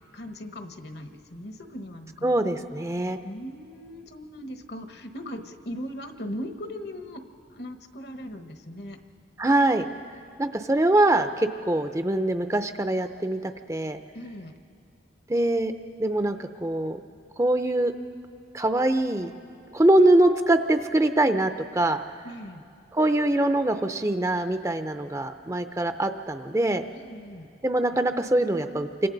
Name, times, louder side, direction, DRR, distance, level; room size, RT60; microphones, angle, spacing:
voice 1, 0.1-2.4 3.2-7.2 7.5-9.0 14.1-14.5 22.2-22.6 26.9-27.5, equal, 60° left, 7 dB, 1.2 m, -39 dB
voice 2, 2.2-3.2 9.4-9.8 10.4-14.0 15.3-15.7 16.0-17.0 17.4-17.9 18.5-19.3 19.7-22.0 22.9-26.8 27.6-29.1, right 1 dB, 15° right, 8 dB, 0.5 m, -23 dB
29.0 x 25.5 x 4.0 m, 2.4 s
head